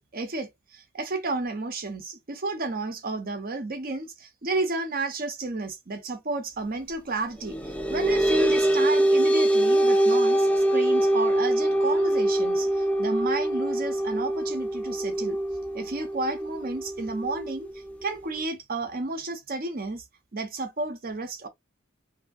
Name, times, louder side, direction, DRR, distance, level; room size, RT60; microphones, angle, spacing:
voice 1, 0.1-15.4 15.7-17.7 18.0-20.0 20.3-21.5, right 2 dB, 45° right, 0.7 m, -32 dB
sound 1, 7.5-18.4, right 1 dB, 5° left, 0.4 m, -24 dB
2.7 x 2.7 x 2.3 m
head